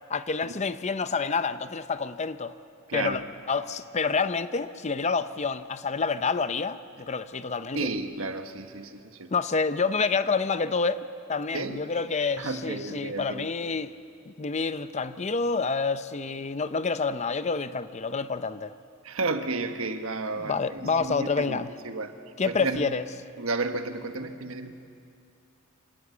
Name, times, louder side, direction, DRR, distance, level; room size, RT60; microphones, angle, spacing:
voice 1, 0.1-2.5 2.9-3.2 3.5-7.9 9.3-13.9 14.3-18.7 20.4-21.7 22.4-23.0, left 4 dB, 30° left, 0.6 m, -28 dB
voice 2, 2.9-3.2 7.7-9.3 11.5-11.8 12.4-13.5 19.0-22.1 22.5-22.8 23.4-24.7, right 3 dB, 75° right, 1.4 m, -32 dB
26.5 x 18.0 x 8.3 m
head